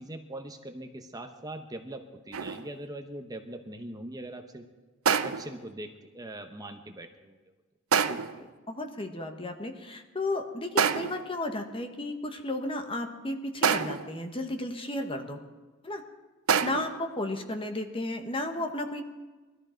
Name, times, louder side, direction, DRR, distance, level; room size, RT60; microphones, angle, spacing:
voice 1, 0.0-4.7 5.0-7.4, right 1 dB, 20° right, 5 dB, 0.9 m, -41 dB
sound 1, 2.3-2.8 5.1-5.6 7.9-8.4 10.8-11.3 13.6-14.2 16.5-17.1, right 6 dB, 85° right, 0.7 m, -27 dB
voice 2, 8.0-15.4 15.8-16.0 16.6-19.0, left 2 dB, 25° left, 5 dB, 1.3 m, -34 dB
20.5 x 13.5 x 4.5 m, 1.2 s
head